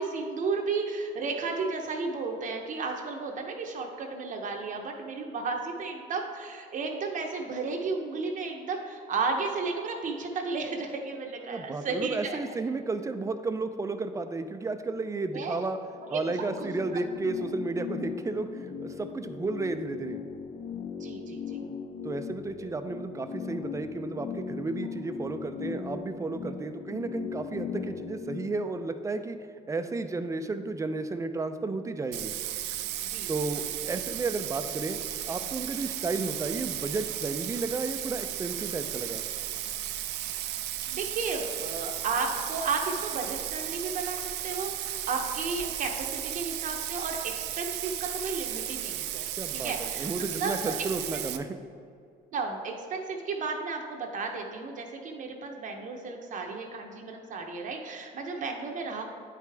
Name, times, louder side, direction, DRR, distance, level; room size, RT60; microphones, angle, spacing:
voice 1, 0.0-12.4 15.3-15.6 16.1-16.7 18.5-18.7 21.0-21.6 33.0-33.5 40.9-49.3 49.5-50.1 50.4-50.8 51.1-51.2 52.3-59.1, right 4 dB, 50° right, 2 dB, 0.7 m, -33 dB
voice 2, 11.5-15.8 16.1-20.2 22.0-29.4 29.7-32.3 33.3-35.0 35.3-39.2 49.4-51.6, right 3 dB, 20° right, 9 dB, 0.4 m, -33 dB
sound 1, 16.0-28.5, left 6 dB, 40° left, 0.4 m, -39 dB
Bathtub (filling or washing), 32.1-51.4, right 12 dB, 85° right, 0.5 m, -35 dB
9.3 x 4.9 x 3.4 m, 2.3 s
cardioid pair, 110°, 17 cm